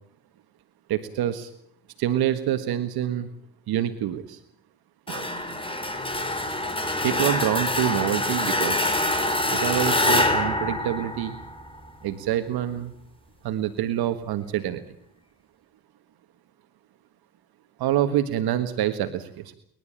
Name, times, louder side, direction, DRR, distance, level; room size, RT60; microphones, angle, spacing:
voice 1, 0.9-1.5 2.0-3.3 3.7-4.4 5.1-5.3 7.0-8.8 9.5-11.4 12.0-12.9 13.4-14.8 17.8-19.5, right 11 dB, 70° right, 9 dB, 1.7 m, -26 dB
sound 1, 5.1-11.8, left 1 dB, 15° left, 4.1 m, -25 dB
29.0 x 12.5 x 8.8 m, 0.70 s
cardioid pair, 90°, 39 cm